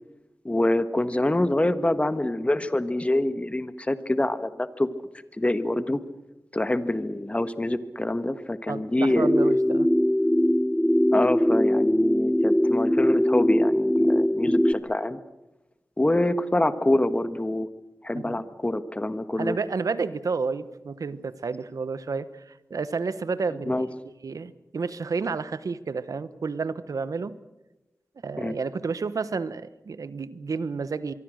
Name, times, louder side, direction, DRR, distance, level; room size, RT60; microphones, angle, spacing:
voice 1, 0.4-4.9 5.4-6.0 6.5-9.3 11.1-15.2 16.0-17.7 18.0-19.6 23.7-23.9 28.4-28.5, left 1 dB, 20° left, 11 dB, 1.4 m, -25 dB
voice 2, 8.7-9.9 18.1-18.5 19.4-23.9 24.2-27.3 28.2-31.1, right 4 dB, 80° right, 14 dB, 1.1 m, -31 dB
sound 1, 9.1-14.7, equal, 5° left, 0.8 m, -21 dB
24.5 x 23.5 x 6.5 m, 0.96 s
wide cardioid pair, 75°, 6 cm